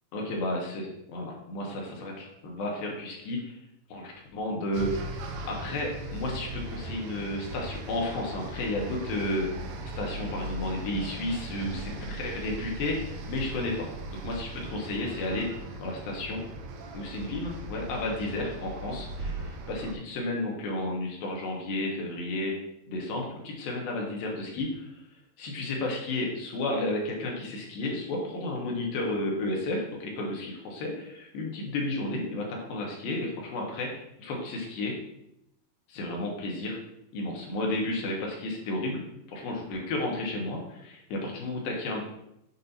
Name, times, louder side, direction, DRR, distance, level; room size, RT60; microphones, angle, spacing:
voice 1, 0.1-3.4 3.9-5.2 5.4-9.5 9.9-13.7 14.2-15.5 15.8-16.4 16.9-22.5 22.9-24.9 25.4-35.0 35.9-36.8 37.1-42.0, left 2 dB, 80° left, -1 dB, 2.9 m, -32 dB
sound 1, 4.7-19.9, right 1 dB, 85° right, 1.6 m, -38 dB
7.3 x 2.7 x 5.5 m, 0.82 s
omnidirectional pair, 4.2 m